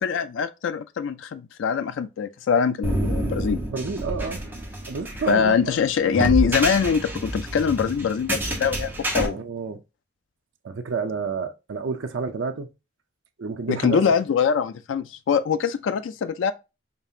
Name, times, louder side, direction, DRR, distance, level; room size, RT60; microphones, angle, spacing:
voice 1, 0.0-3.6 5.3-9.4 13.7-16.5, left 6 dB, 80° left, 0.3 m, -23 dB
sound 1, 2.8-9.3, right 1 dB, 10° right, 0.8 m, -28 dB
voice 2, 3.7-4.4 4.9-5.5 9.3-9.8 10.6-12.7 13.4-14.0, right 5 dB, 80° right, 0.5 m, -29 dB
5.2 x 2.4 x 2.6 m
head